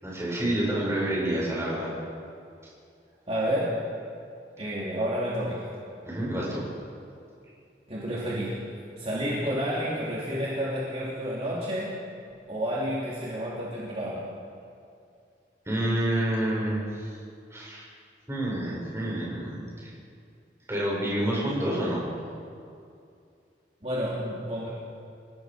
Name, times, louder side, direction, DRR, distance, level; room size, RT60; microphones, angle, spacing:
voice 1, 0.0-1.9 6.0-6.6 15.6-17.1 17.5-17.9 18.3-19.9 20.7-22.0, right 1 dB, 15° right, -5 dB, 6.7 m, -28 dB
voice 2, 3.3-3.8 4.6-5.6 7.9-8.6 9.0-11.9 12.5-14.3 23.8-24.7, equal, 35° right, -7 dB, 3.3 m, -30 dB
28.5 x 17.5 x 5.3 m, 2.4 s
head